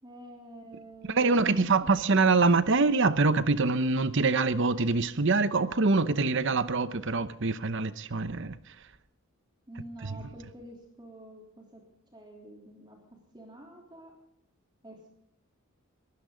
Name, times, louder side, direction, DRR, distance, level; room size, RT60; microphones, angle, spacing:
voice 1, 0.0-1.9 9.7-11.8 12.1-13.0 13.3-14.1 14.8-15.1, right 1 dB, 20° right, 3.4 m, -48 dB
voice 2, 1.1-8.6 10.0-10.2, right 3 dB, 55° right, 0.8 m, -25 dB
22.0 x 15.5 x 3.9 m
head